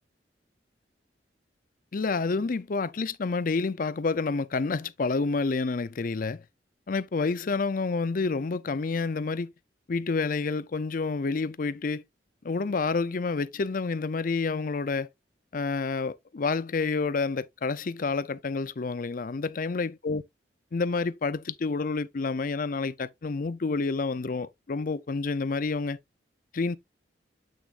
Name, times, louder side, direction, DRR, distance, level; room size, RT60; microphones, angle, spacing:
voice 1, 1.9-6.4 6.9-9.5 9.9-12.0 12.4-15.1 15.5-20.2 20.7-26.0 26.5-26.8, left 4 dB, 50° left, 0.5 m, -29 dB
8.4 x 6.1 x 2.5 m
head